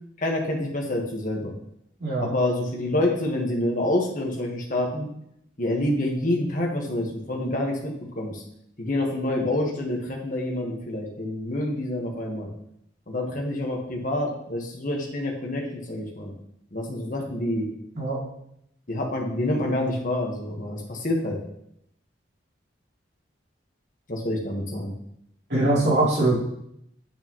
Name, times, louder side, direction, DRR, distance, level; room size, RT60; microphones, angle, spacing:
voice 1, 0.2-1.5 2.2-5.1 5.6-8.4 8.8-12.5 13.1-16.3 16.7-17.7 18.9-21.4 24.1-24.9, left 1 dB, 45° left, 0 dB, 1.4 m, -27 dB
voice 2, 25.5-26.3, right 2 dB, 60° right, -6 dB, 3.2 m, -22 dB
8.8 x 6.7 x 3.1 m, 0.74 s
head